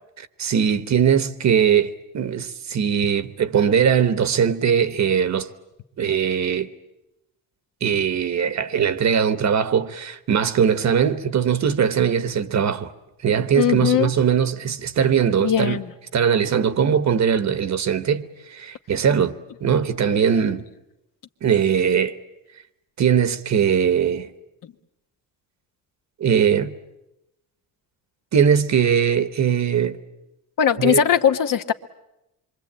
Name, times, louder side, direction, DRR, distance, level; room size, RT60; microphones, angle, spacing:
voice 1, 0.2-5.5 6.0-6.7 7.8-12.9 13.2-15.8 16.1-19.3 19.6-20.6 21.4-22.2 23.0-24.3 26.2-26.7 28.3-30.0 30.8-31.0, right 7 dB, 45° right, 1.2 m, -20 dB
voice 2, 13.6-14.1 15.4-15.9 30.6-31.7, left 8 dB, 55° left, 1.2 m, -19 dB
26.5 x 24.0 x 8.8 m
cardioid pair, 140°, 38 cm